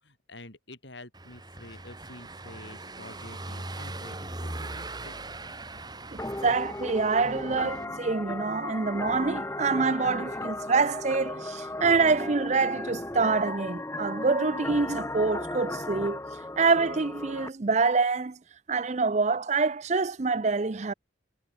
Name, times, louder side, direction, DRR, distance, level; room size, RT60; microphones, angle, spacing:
voice 1, 0.0-5.2 6.1-6.2, left 2 dB, 70° left, 7.5 m, -48 dB
Car passing by / Engine, 1.1-7.9, right 2 dB, 20° right, 3.4 m, -40 dB
voice 2, 6.1-16.2 16.6-18.4 18.7-20.9, right 4 dB, 35° right, 0.5 m, -26 dB
sound 1, 6.2-17.5, left 2 dB, 15° left, 1.0 m, -36 dB
head